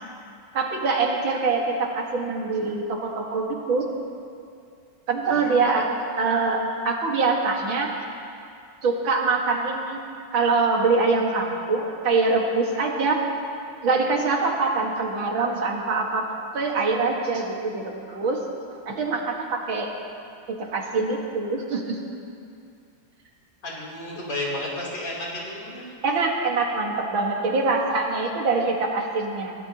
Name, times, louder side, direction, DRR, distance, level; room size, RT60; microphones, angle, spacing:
voice 1, 0.5-3.9 5.1-5.9 6.2-7.9 8.8-10.0 10.3-13.2 13.8-16.3 16.5-18.4 18.9-19.9 20.6-22.0 26.0-29.5, right 3 dB, 80° right, 0 dB, 2.5 m, -24 dB
voice 2, 5.2-6.5 23.6-25.9 27.4-27.7, left 1 dB, 65° left, -4 dB, 4.1 m, -34 dB
24.0 x 17.0 x 2.9 m, 2.5 s
omnidirectional pair, 2.1 m